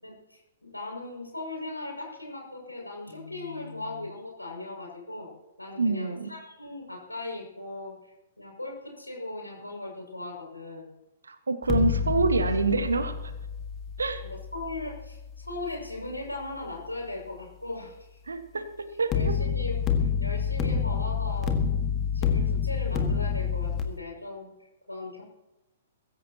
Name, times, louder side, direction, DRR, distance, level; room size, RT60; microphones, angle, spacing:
voice 1, 0.0-5.3 5.6-10.9 14.2-18.2 19.1-21.5 22.1-25.2, left 2 dB, 85° left, -1 dB, 6.3 m, -38 dB
voice 2, 5.8-6.3 11.2-13.1 14.0-14.2 18.3-18.6 19.0-19.3, right 3 dB, 70° right, 8 dB, 1.7 m, -26 dB
sound 1, 11.6-16.7 19.1-23.8, left 6 dB, 25° left, 1.8 m, -29 dB
22.5 x 14.5 x 3.0 m, 0.97 s
figure-of-eight pair, 115°, 0 cm